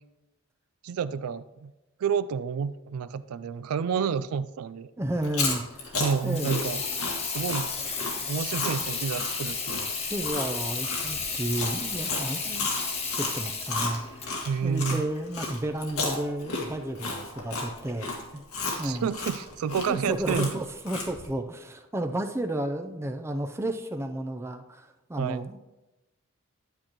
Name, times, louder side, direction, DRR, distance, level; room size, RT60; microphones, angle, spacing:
voice 1, 0.8-1.7 2.0-4.9 6.0-6.8 7.2-7.7 8.3-9.9 14.4-15.0 18.8-20.6 25.2-25.5, right 6 dB, 75° right, 14 dB, 0.3 m, -29 dB
voice 2, 5.0-6.6 10.1-12.7 13.2-14.0 14.6-18.4 18.8-19.1 19.9-25.6, right 1 dB, 10° right, 6 dB, 0.5 m, -32 dB
Chewing mastication, 5.2-15.0 15.3-21.3, left 3 dB, 90° left, 1.8 m, -33 dB
Water tap faucet / Sink (filling or washing), 6.1-15.7, left 5 dB, 30° left, 1.1 m, -33 dB
9.7 x 8.7 x 3.0 m, 1.0 s
head